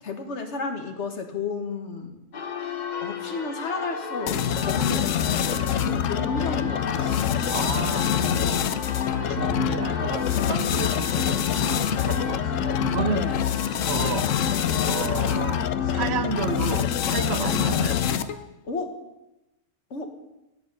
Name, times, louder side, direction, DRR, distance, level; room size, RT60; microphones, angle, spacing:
voice 1, 0.0-2.2 3.0-4.4 4.7-5.1 5.4-7.1 13.1-13.5 18.6-19.0 19.9-20.1, left 4 dB, 60° left, 5 dB, 1.8 m, -32 dB
Church bell, 2.3-18.1, left 5 dB, 40° left, 0.8 m, -36 dB
sound 1, 4.3-18.5, left 9 dB, 75° left, 1.1 m, -25 dB
voice 2, 7.0-13.3 13.8-14.3 14.9-18.1, right 7 dB, 55° right, 13 dB, 1.0 m, -32 dB
17.0 x 9.3 x 5.5 m, 0.97 s
omnidirectional pair, 1.4 m